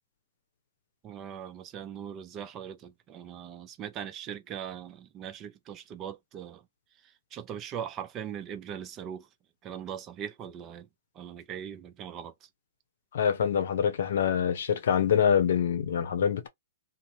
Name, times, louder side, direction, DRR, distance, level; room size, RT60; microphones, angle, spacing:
voice 1, 1.0-6.6 7.3-9.3 9.6-10.9 11.2-12.3, right 9 dB, 30° right, 0.5 m, -40 dB
voice 2, 13.1-16.5, left 8 dB, 70° left, 0.7 m, -25 dB
2.8 x 2.0 x 3.1 m
hypercardioid pair, 130°, 0 cm